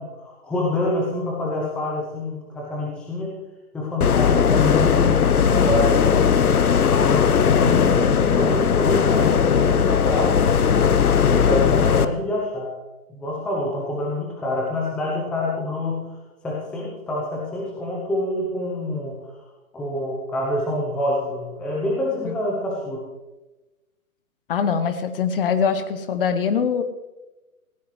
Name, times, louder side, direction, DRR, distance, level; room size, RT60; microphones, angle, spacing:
voice 1, 0.0-3.4 3.7-6.3 7.0-10.4 11.2-12.7 13.1-16.1 16.4-19.2 19.7-23.0, left 1 dB, ahead, -2 dB, 0.7 m, -27 dB
sound 1, 4.0-12.1, left 7 dB, 75° left, 1.0 m, -18 dB
voice 2, 24.5-26.8, left 6 dB, 40° left, 11 dB, 1.1 m, -23 dB
17.5 x 16.0 x 3.3 m, 1.1 s
hypercardioid pair, 140°, 44 cm